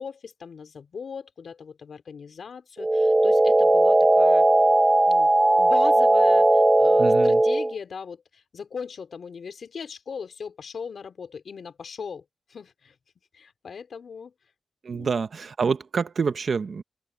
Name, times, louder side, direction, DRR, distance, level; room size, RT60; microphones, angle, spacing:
voice 1, 0.0-4.5 5.1-5.3 5.6-12.2 12.5-12.9 13.3-14.3 14.9-15.1, left 6 dB, 70° left, 3.9 m, -38 dB
sound 1, 2.8-7.7, right 2 dB, 15° right, 1.1 m, -18 dB
voice 2, 7.0-7.4 14.8-16.8, right 5 dB, 60° right, 0.8 m, -27 dB
open air
wide cardioid pair, 120°, 0 cm